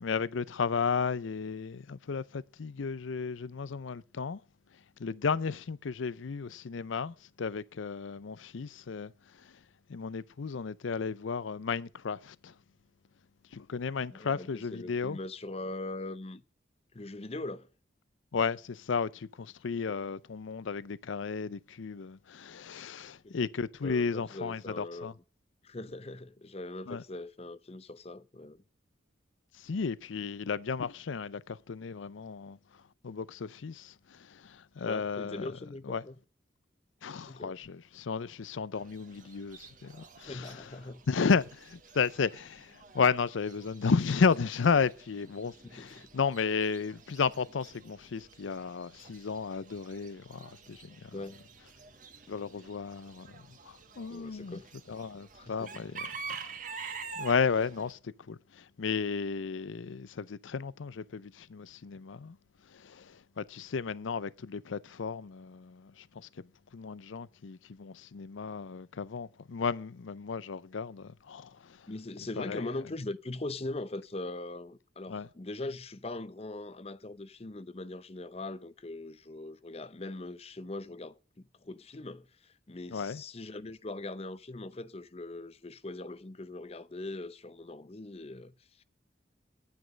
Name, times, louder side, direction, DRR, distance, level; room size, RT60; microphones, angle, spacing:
voice 1, 0.0-4.4 5.0-9.1 9.9-12.5 13.5-15.2 18.3-25.1 26.9-27.0 29.6-32.6 33.0-35.5 35.9-36.0 37.0-40.5 41.1-51.0 52.3-53.3 53.7-54.6 54.9-55.9 56.3-56.4 56.8-58.0 58.3-62.4 62.8-65.9 66.7-71.5 72.4-72.6 75.1-75.3 82.9-83.2, left 5 dB, 85° left, 0.5 m, -33 dB
voice 2, 14.1-16.4 16.9-17.7 23.0-23.5 23.8-25.1 25.6-28.6 34.8-36.2 37.3-37.6 40.3-41.0 45.6-46.1 51.1-51.4 54.1-54.7 55.4-56.0 71.9-88.8, left 2 dB, 30° left, 0.6 m, -41 dB
Chicken rooster / Bird, 38.7-57.9, right 5 dB, 45° right, 1.7 m, -48 dB
10.0 x 9.5 x 5.1 m
head